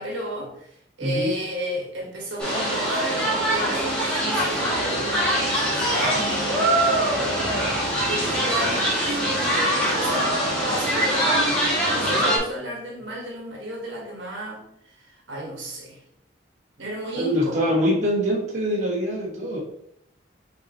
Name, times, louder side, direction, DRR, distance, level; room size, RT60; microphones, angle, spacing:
voice 1, 0.0-10.3 10.7-16.0 16.8-17.7, right 1 dB, 75° right, -1 dB, 1.2 m, -33 dB
voice 2, 1.0-1.4 17.1-19.6, equal, 35° right, -5 dB, 1.2 m, -24 dB
sound 1, 2.4-12.4, right 1 dB, 5° left, 1.4 m, -23 dB
5.5 x 3.2 x 2.8 m, 0.72 s
head